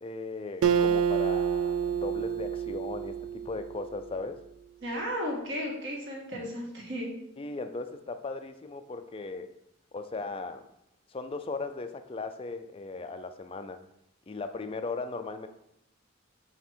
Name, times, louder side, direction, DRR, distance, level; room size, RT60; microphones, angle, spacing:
voice 1, 0.0-4.4 7.4-9.5 9.9-10.7 11.1-13.8 14.3-15.5, left 3 dB, 25° left, 8 dB, 0.4 m, -37 dB
Acoustic guitar, 0.6-4.1, right 7 dB, 80° right, 0.4 m, -28 dB
voice 2, 4.8-7.1, equal, 55° right, -3 dB, 1.8 m, -34 dB
7.3 x 3.5 x 4.4 m, 0.80 s
head